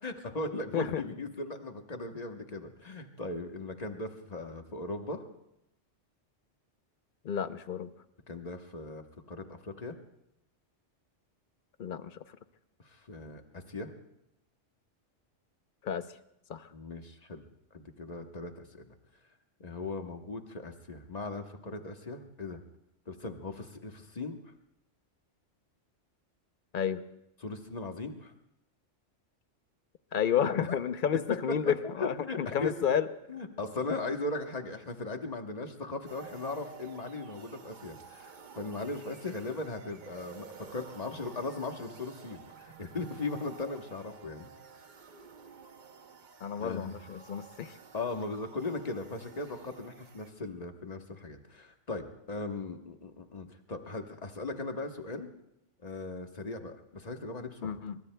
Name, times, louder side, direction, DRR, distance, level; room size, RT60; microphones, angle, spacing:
voice 1, 0.0-5.2 8.3-10.0 12.8-13.9 16.7-17.4 17.7-18.9 19.6-22.6 23.1-24.4 27.4-28.3 30.6-30.7 32.0-33.0 33.3-44.5 46.6-46.9 47.9-55.3 55.8-57.8, left 3 dB, 35° left, 5 dB, 1.2 m, -38 dB
voice 2, 7.2-7.9 11.8-12.2 15.8-16.0 16.5-16.7 26.7-27.0 30.1-33.1 46.4-47.8 57.6-58.0, left 8 dB, 50° left, 11 dB, 0.7 m, -31 dB
sound 1, 36.1-50.3, right 6 dB, 45° right, 0.8 m, -51 dB
25.0 x 24.0 x 2.2 m, 0.83 s
omnidirectional pair, 1.2 m